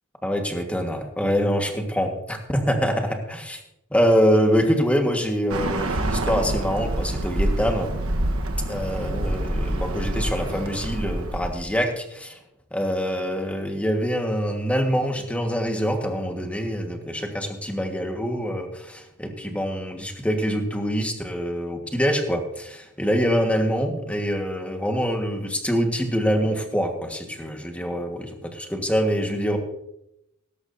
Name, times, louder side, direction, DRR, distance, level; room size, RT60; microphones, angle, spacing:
voice 1, 0.2-3.6 3.9-7.9 8.7-12.4 12.7-29.6, equal, 5° left, 4 dB, 1.5 m, -25 dB
Bird, 5.5-11.6, right 1 dB, 80° right, 1.2 m, -26 dB
17.0 x 13.5 x 2.7 m, 0.83 s
head